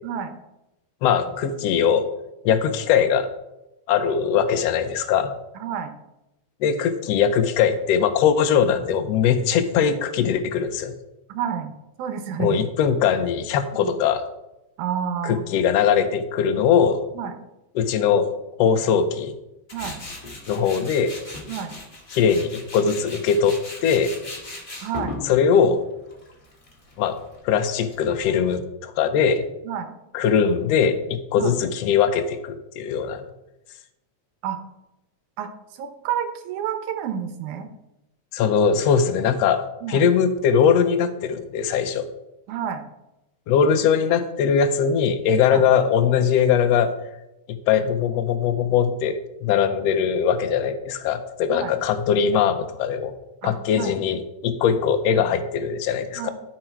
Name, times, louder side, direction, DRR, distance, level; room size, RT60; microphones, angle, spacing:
voice 1, 1.0-2.1 2.4-3.3 3.9-5.3 6.6-10.9 12.4-14.2 15.2-17.0 17.7-18.3 18.6-19.3 20.5-21.2 22.1-24.2 25.3-25.8 27.0-27.2 27.4-29.4 30.1-33.2 38.3-42.1 43.5-46.9 47.5-53.1 53.4-56.3, left 7 dB, 75° left, 9 dB, 1.7 m, -21 dB
voice 2, 5.6-5.9 11.3-12.6 13.8-13.9 14.8-15.5 17.1-17.4 19.7-20.0 21.5-21.8 24.8-25.2 29.6-29.9 31.4-31.6 34.4-34.6 35.4-35.5 35.8-37.7 39.8-40.0 42.5-42.9 45.5-45.6 51.5-51.7 53.4-54.0 56.2-56.3, right 8 dB, 90° right, 7 dB, 2.4 m, -29 dB
Tools, 19.7-28.5, left 2 dB, 25° left, 1.2 m, -38 dB
13.0 x 4.9 x 4.5 m, 0.91 s
omnidirectional pair, 3.4 m